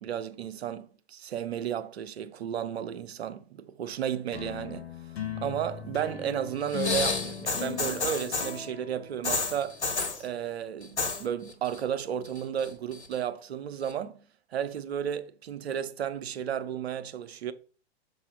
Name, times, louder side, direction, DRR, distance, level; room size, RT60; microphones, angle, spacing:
voice 1, 0.0-4.9 5.4-9.9 10.2-14.3 14.5-17.5, right 9 dB, 70° right, 0.8 m, -33 dB
sound 1, 4.3-9.9, left 9 dB, 65° left, 1.7 m, -39 dB
sound 2, 6.7-8.6 9.2-10.2 10.8-11.2 11.5-12.0 12.3-13.1 13.9-14.0, left 4 dB, 85° left, 1.4 m, -31 dB
6.5 x 4.2 x 4.9 m
hypercardioid pair, 110°, 33 cm